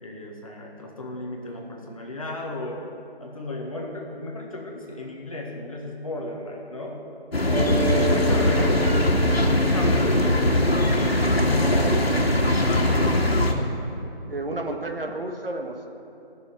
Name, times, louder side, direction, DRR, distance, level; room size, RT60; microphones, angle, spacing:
voice 1, 0.0-2.8 3.2-7.0 7.7-7.8 8.1-12.0 12.7-13.3, left 1 dB, 35° left, 0 dB, 1.6 m, -34 dB
sound 1, 7.3-13.5, left 1 dB, 75° left, 2.1 m, -21 dB
voice 2, 7.4-7.8 11.9-12.0 13.1-13.2 14.3-15.9, right 2 dB, 65° right, 3 dB, 1.6 m, -32 dB
Mallet percussion, 7.5-12.0, right 2 dB, 30° right, 2.7 m, -31 dB
15.0 x 6.8 x 9.7 m, 2.9 s
figure-of-eight pair, 165°, 31 cm